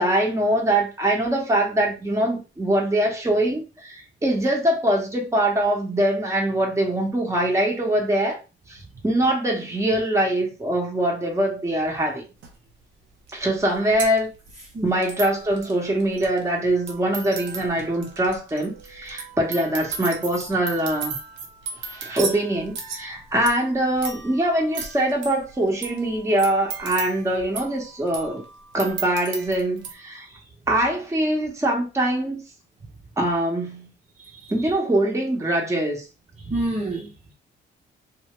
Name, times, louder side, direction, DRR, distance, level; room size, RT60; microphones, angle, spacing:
voice 1, 0.0-8.4 8.7-12.2 13.3-14.3 14.8-21.1 21.8-28.4 28.7-30.3 30.7-32.4 33.2-33.9 34.5-36.0, right 1 dB, 15° right, 1.3 m, -23 dB
sound 1, 12.4-12.5 13.3-13.4 13.6-29.9, right 5 dB, 75° right, 0.9 m, -36 dB
voice 2, 34.2-34.5 36.4-37.3, right 1 dB, 35° right, 1.0 m, -29 dB
2.8 x 2.7 x 3.1 m
cardioid pair, 90°, 20 cm